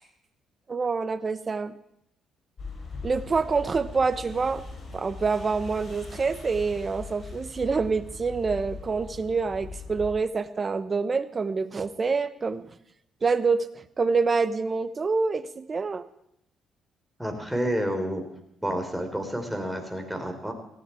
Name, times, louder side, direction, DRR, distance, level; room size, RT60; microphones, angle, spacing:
voice 1, 0.7-1.7 3.0-4.6 4.9-12.6 13.2-16.0, right 4 dB, 35° right, 13 dB, 1.1 m, -26 dB
sound 1, 2.6-10.1, left 4 dB, 45° left, 6.1 m, -40 dB
voice 2, 17.2-18.2 18.6-20.5, equal, 5° right, 4 dB, 4.1 m, -29 dB
18.0 x 15.5 x 4.7 m, 0.78 s
supercardioid pair, 75°, 0 cm